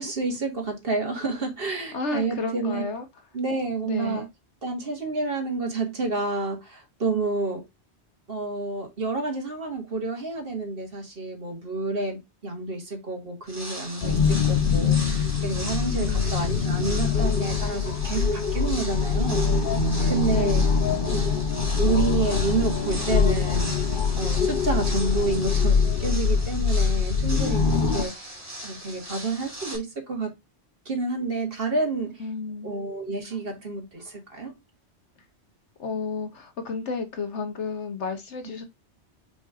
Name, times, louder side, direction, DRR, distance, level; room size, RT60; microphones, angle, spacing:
voice 1, 0.0-2.8 3.3-4.3 4.6-7.6 8.3-19.5 20.1-20.6 21.1-21.2 21.8-23.7 24.2-28.3 28.6-30.3 30.9-32.1 32.6-34.5, right 3 dB, 55° right, 2.1 m, -29 dB
voice 2, 1.9-3.3 3.8-4.3 15.9-16.5 20.3-21.2 32.2-32.7 35.8-38.6, left 4 dB, 85° left, 1.6 m, -32 dB
sound 1, 13.4-29.8, right 1 dB, 15° right, 2.3 m, -39 dB
sound 2, 14.0-28.0, left 5 dB, 55° left, 0.9 m, -23 dB
5.2 x 5.2 x 3.7 m
omnidirectional pair, 1.2 m